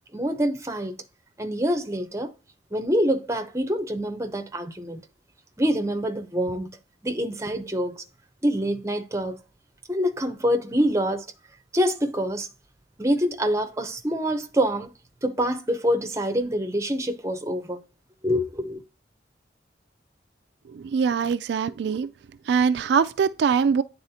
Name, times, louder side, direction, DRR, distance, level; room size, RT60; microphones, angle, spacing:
voice 1, 0.1-1.0 1.4-2.3 2.7-5.0 5.6-6.8 7.0-8.0 8.4-9.4 9.9-11.3 11.7-12.5 13.0-14.9 15.2-17.8 18.2-18.8, equal, 15° right, 0.7 m, -25 dB
voice 2, 20.7-22.1 22.5-23.8, right 6 dB, 65° right, 0.3 m, -22 dB
9.5 x 4.1 x 2.8 m
head